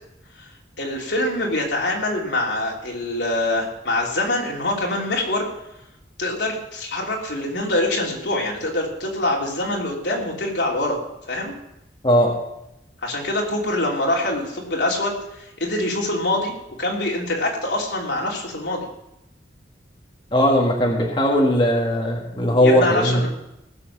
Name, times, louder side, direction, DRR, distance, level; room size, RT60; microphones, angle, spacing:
voice 1, 0.8-5.5 6.2-11.0 11.3-11.5 13.0-16.5 16.8-18.9 22.6-23.3, left 1 dB, 75° left, -2 dB, 3.2 m, -24 dB
voice 2, 20.3-23.2, equal, 30° left, -1 dB, 1.7 m, -18 dB
19.0 x 7.6 x 5.9 m, 0.86 s
head